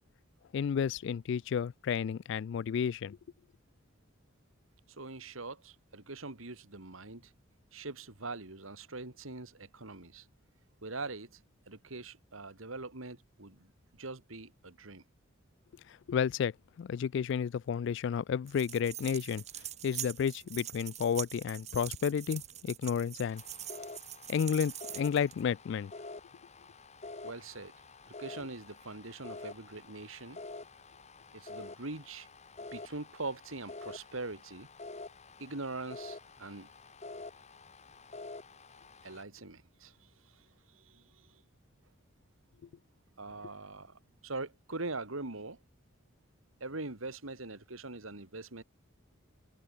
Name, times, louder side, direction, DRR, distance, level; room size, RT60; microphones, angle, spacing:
voice 1, 0.5-3.2 15.9-19.4 19.8-23.4 24.3-25.9, left 7 dB, 60° left, 0.3 m, -32 dB
voice 2, 4.9-7.3 7.7-10.3 10.8-11.4 11.7-13.7 14.0-15.0 27.2-27.7 28.2-30.4 31.3-32.3 32.7-34.7 35.4-36.7 39.0-40.4 40.7-41.3 43.2-45.6 46.6-48.6, right 3 dB, 85° right, 2.7 m, -42 dB
sound 1, 18.5-25.4, right 11 dB, 35° right, 1.1 m, -44 dB
sound 2, 23.2-39.2, left 3 dB, 35° left, 1.5 m, -48 dB
head